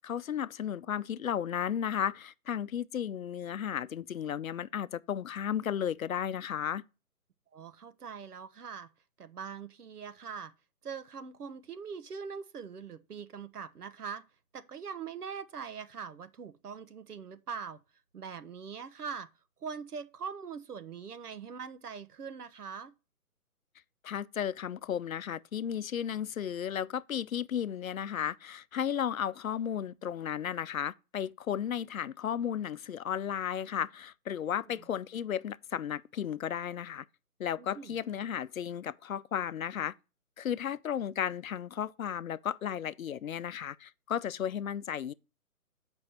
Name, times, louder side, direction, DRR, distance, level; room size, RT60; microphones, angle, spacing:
voice 1, 0.0-6.8 24.0-37.0 37.4-39.9 40.4-45.1, left 9 dB, 65° left, 0.6 m, -34 dB
voice 2, 7.5-8.9 9.2-10.5 10.8-14.2 14.5-17.8 18.1-19.3 19.6-22.9 34.6-34.9 37.6-37.9, right 6 dB, 85° right, 1.0 m, -42 dB
7.9 x 5.3 x 4.4 m
hypercardioid pair, 150°, 45 cm